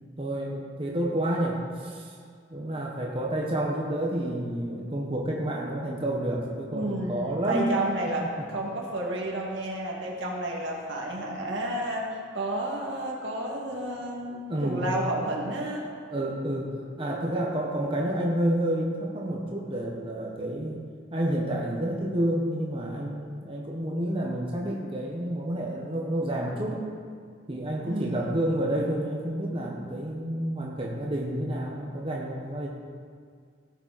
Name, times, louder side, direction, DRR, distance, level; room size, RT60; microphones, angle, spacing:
voice 1, 0.2-2.1 2.5-8.3 14.5-14.9 16.1-20.8 21.1-26.9 27.5-32.7, right 1 dB, 30° right, -2 dB, 1.1 m, -29 dB
voice 2, 6.7-12.1 12.3-15.9 27.9-28.3, right 1 dB, 75° right, -2 dB, 2.1 m, -31 dB
16.5 x 7.0 x 4.1 m, 2.1 s
head